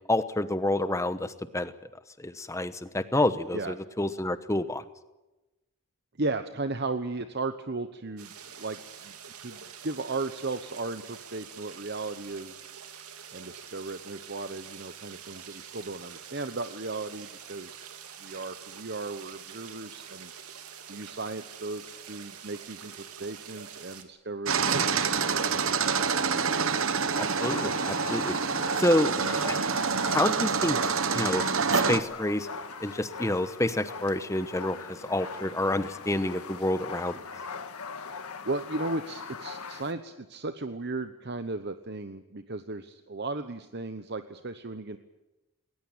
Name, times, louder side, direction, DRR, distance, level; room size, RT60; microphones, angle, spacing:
voice 1, 0.1-1.7 2.2-4.8 27.2-28.3 28.7-29.7 30.1-30.8 31.1-31.4 31.7-32.5 32.8-37.2, left 1 dB, 15° left, 12 dB, 1.0 m, -28 dB
voice 2, 6.2-8.3 8.6-12.6 13.3-17.9 18.2-20.3 20.9-21.8 22.1-25.6 38.4-45.0, right 3 dB, 50° right, 10 dB, 1.0 m, -36 dB
sound 1, 8.2-24.0, right 8 dB, 85° right, 2.7 m, -46 dB
sound 2, 24.5-32.0, right 5 dB, 65° right, 1.3 m, -27 dB
sound 3, 27.1-39.9, left 5 dB, 85° left, 1.8 m, -41 dB
20.0 x 19.5 x 8.8 m, 1.0 s
head